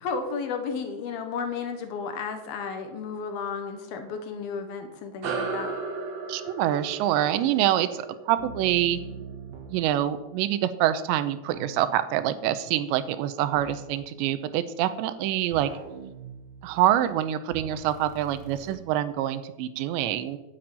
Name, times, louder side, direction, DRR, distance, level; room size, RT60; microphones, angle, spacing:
voice 1, 0.0-5.7, left 5 dB, 70° left, 7 dB, 2.6 m, -33 dB
sound 1, 5.2-10.1, right 4 dB, 65° right, 1.8 m, -36 dB
voice 2, 6.3-9.0 9.7-15.7 16.6-20.4, right 12 dB, 90° right, 12 dB, 3.0 m, -26 dB
sound 2, 8.4-9.9 11.5-12.1 13.5-13.9 15.5-17.0 17.5-18.8, right 5 dB, 45° right, 2.3 m, -42 dB
10.5 x 7.9 x 9.0 m, 1.0 s
omnidirectional pair, 5.1 m